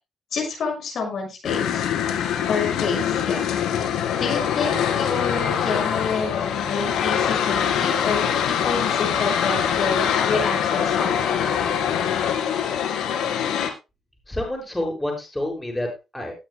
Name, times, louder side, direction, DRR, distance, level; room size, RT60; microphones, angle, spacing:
voice 1, 0.3-1.9 2.5-3.4 4.1-11.4, left 4 dB, 60° left, 1 dB, 6.3 m, -28 dB
sound 1, 1.4-13.7, left 8 dB, 85° left, 2.2 m, -23 dB
voice 2, 14.3-16.3, left 1 dB, 10° left, 2 dB, 6.7 m, -28 dB
19.0 x 8.6 x 2.3 m, 0.26 s
cardioid pair, 90°, 0 cm